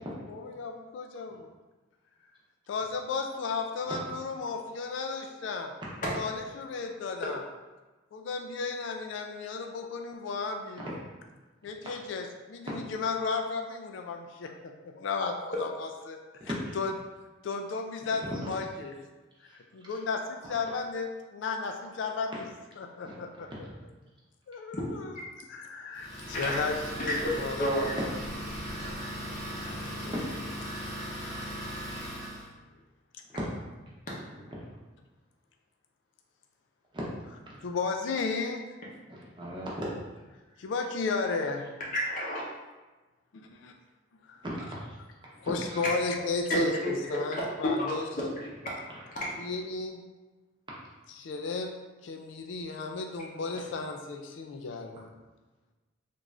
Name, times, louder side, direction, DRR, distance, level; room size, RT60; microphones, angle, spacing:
voice 1, 0.3-1.5 2.7-5.7 6.1-7.4 8.1-11.0 11.6-16.9 17.4-18.9 19.4-22.4 22.8-23.5 24.5-25.2 25.5-27.6 37.6-38.6 40.6-41.7 43.6-43.7 45.4-48.1 49.4-50.0 51.2-55.1, left 4 dB, 70° left, 4 dB, 0.3 m, -34 dB
voice 2, 16.4-16.8 18.0-18.4 19.4-19.6 19.8-19.9 20.4-20.5 23.0-23.2 29.7-29.8 30.1-30.2 33.3-33.4 36.9-37.0 37.5-37.6 39.1-39.9 44.4-44.7 45.4-45.8, equal, 25° right, -5 dB, 0.7 m, -37 dB
Idling, 25.9-32.5, equal, 20° left, 1.0 m, -38 dB
voice 3, 27.0-27.3 27.6-27.8 41.8-42.4 45.8-46.6 47.6-48.7, equal, 40° left, -5 dB, 0.7 m, -30 dB
3.5 x 2.5 x 3.1 m, 1.2 s
head